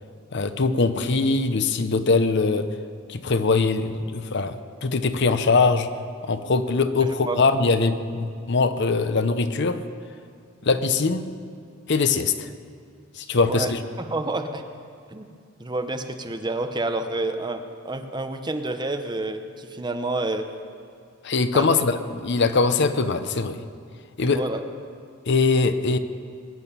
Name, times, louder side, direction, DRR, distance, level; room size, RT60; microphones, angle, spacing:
voice 1, 0.3-2.7 3.1-5.9 6.2-9.8 10.6-11.3 11.9-12.5 13.2-13.8 21.2-23.6 24.2-24.4 25.3-26.0, left 4 dB, 55° left, 10 dB, 0.7 m, -22 dB
voice 2, 7.0-7.4 13.5-14.6 15.1-15.3 15.6-20.5 21.5-21.7 24.2-24.6, right 2 dB, 20° right, 7 dB, 0.8 m, -29 dB
21.5 x 9.2 x 6.9 m, 2.3 s
head